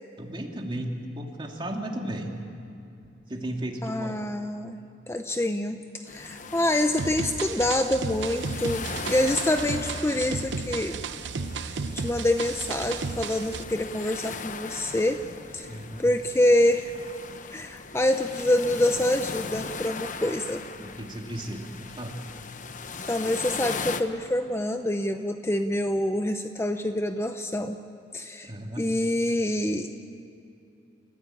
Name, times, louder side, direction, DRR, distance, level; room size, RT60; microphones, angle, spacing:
voice 1, 0.2-2.4 3.3-4.2 15.7-16.1 20.8-22.2 28.4-28.9, right 1 dB, 30° right, 1 dB, 2.6 m, -35 dB
voice 2, 3.8-4.8 5.1-11.0 11.6-15.2 15.5-15.7 16.0-16.9 17.5-20.6 23.1-27.8 28.1-29.9, left 1 dB, 15° left, 7 dB, 0.7 m, -26 dB
sound 1, 6.1-24.0, left 4 dB, 45° left, 1.0 m, -39 dB
sound 2, 7.0-13.6, right 4 dB, 85° right, 0.7 m, -34 dB
29.0 x 15.5 x 8.7 m, 2.7 s
head